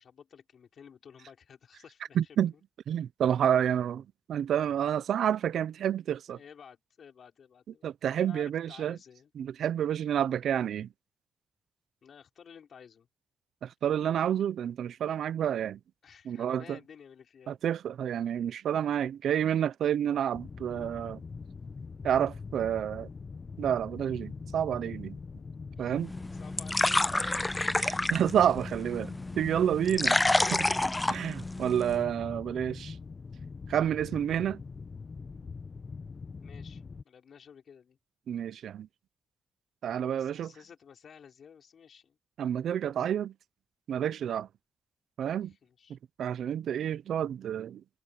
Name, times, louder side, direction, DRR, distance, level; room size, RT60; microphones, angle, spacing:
voice 1, 0.0-2.6 6.3-7.9 8.2-9.3 12.0-13.1 16.0-17.6 25.8-27.4 29.6-29.7 36.4-38.0 40.1-42.2 45.4-46.0, left 7 dB, 65° left, 5.2 m, -53 dB
voice 2, 2.2-2.5 2.9-6.4 7.8-9.0 9.4-10.9 13.6-15.8 16.3-16.8 17.5-21.2 22.0-23.1 23.6-25.2 25.8-26.1 27.8-30.7 31.1-33.0 33.7-34.6 38.3-38.9 39.8-40.5 42.4-43.3 43.9-44.5 45.2-45.5 45.9-47.8, right 9 dB, 85° right, 0.5 m, -29 dB
sound 1, 20.3-37.0, left 4 dB, 40° left, 1.0 m, -43 dB
sound 2, 26.0-32.0, left 2 dB, 15° left, 0.4 m, -29 dB
cardioid pair, 95°, 0 cm